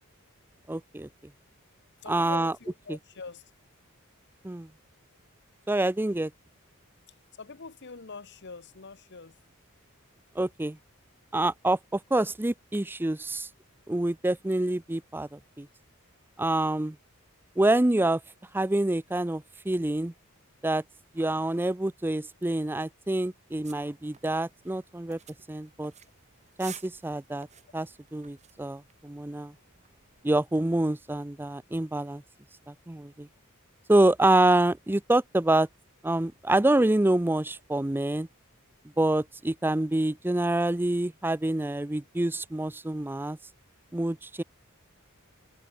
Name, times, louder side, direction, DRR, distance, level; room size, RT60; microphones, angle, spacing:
voice 1, 0.7-1.1 2.1-2.5 2.9-3.0 4.4-4.7 5.7-6.3 10.4-10.8 11.3-13.5 13.9-15.7 16.4-17.0 17.6-18.2 18.5-20.1 20.6-20.8 21.1-25.2 25.5-25.9 26.6-27.5 27.7-29.5 30.2-32.2 32.7-33.3 33.9-35.7 36.0-38.3 39.0-43.4 43.9-44.4, right 1 dB, 10° right, 0.5 m, -26 dB
voice 2, 2.0-3.4 7.4-9.3, left 4 dB, 55° left, 1.1 m, -44 dB
sound 1, 23.6-30.6, right 8 dB, 30° right, 2.6 m, -52 dB
head